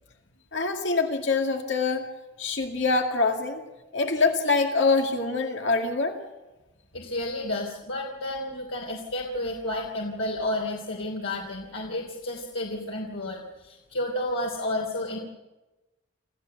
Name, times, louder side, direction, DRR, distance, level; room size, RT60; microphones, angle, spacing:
voice 1, 0.5-2.0 2.4-3.6 3.9-6.2, left 3 dB, 65° left, 3 dB, 2.2 m, -24 dB
voice 2, 6.9-15.2, left 1 dB, 90° left, 0 dB, 3.1 m, -31 dB
27.5 x 14.5 x 7.8 m, 1.1 s
head